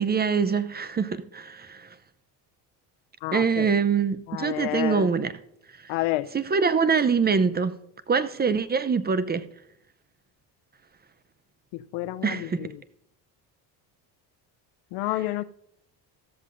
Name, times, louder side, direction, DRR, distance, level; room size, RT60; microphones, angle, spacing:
voice 1, 0.0-1.9 3.3-5.4 5.8-5.9 6.3-7.7 8.1-9.4 12.2-12.7, right 5 dB, 20° right, 0.6 m, -24 dB
voice 2, 3.2-3.7 4.3-5.1 5.9-6.3 11.7-12.7 14.9-15.4, left 17 dB, 85° left, 0.7 m, -29 dB
14.0 x 13.5 x 2.6 m
cardioid pair, 110°, 47 cm